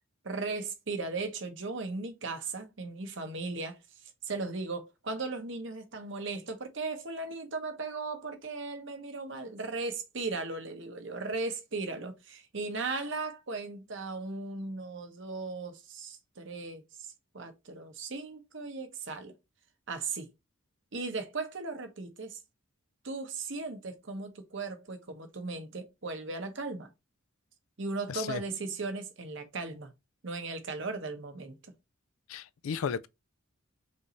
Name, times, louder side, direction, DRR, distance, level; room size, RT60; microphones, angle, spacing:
voice 1, 0.2-16.8 17.3-19.3 19.9-20.3 20.9-22.4 23.0-26.9 27.8-29.9 30.2-31.7, right 3 dB, 60° right, 1.0 m, -37 dB
voice 2, 28.1-28.4 32.3-33.1, left 7 dB, 80° left, 0.4 m, -34 dB
5.4 x 2.7 x 3.0 m
head